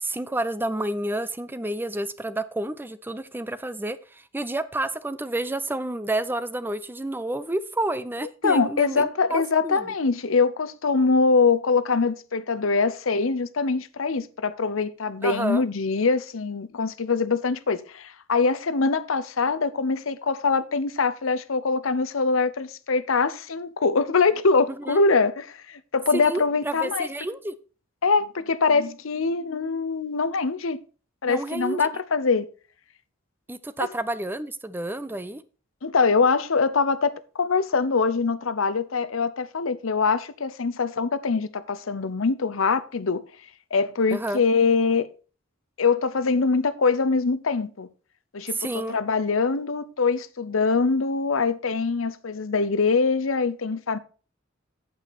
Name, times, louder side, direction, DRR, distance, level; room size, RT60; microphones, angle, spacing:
voice 1, 0.0-9.9 15.2-15.6 24.9-25.0 26.1-27.5 31.2-31.9 33.5-35.4 44.1-44.4 48.5-49.0, right 1 dB, 10° right, 0.5 m, -30 dB
voice 2, 8.4-27.1 28.0-30.8 31.2-32.5 35.8-43.2 43.7-45.1 45.8-47.9 48.3-54.0, left 4 dB, 85° left, 0.8 m, -23 dB
8.6 x 7.9 x 4.1 m
head